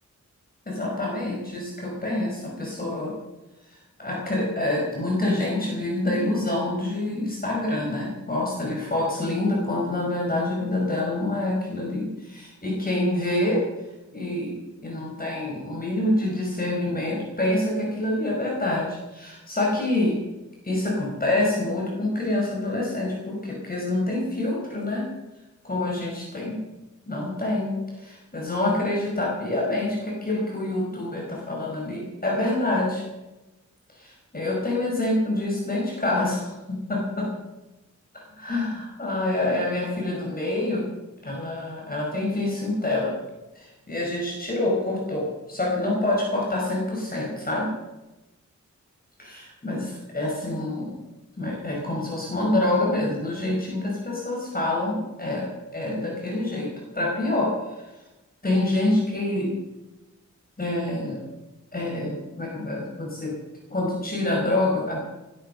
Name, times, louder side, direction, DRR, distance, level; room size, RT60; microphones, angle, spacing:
voice 1, 0.7-3.1 3.6-13.6 14.1-20.2 20.6-25.1 25.6-26.6 27.1-33.0 33.9-37.3 38.4-40.9 41.2-43.1 43.5-47.7 49.2-51.0 51.4-55.5 55.7-57.9 58.4-59.5 60.6-61.2 61.7-63.3 63.7-65.0, left 2 dB, 30° left, -3 dB, 5.6 m, -26 dB
20.0 x 12.5 x 5.5 m, 1.0 s
wide cardioid pair, 135°, 30 cm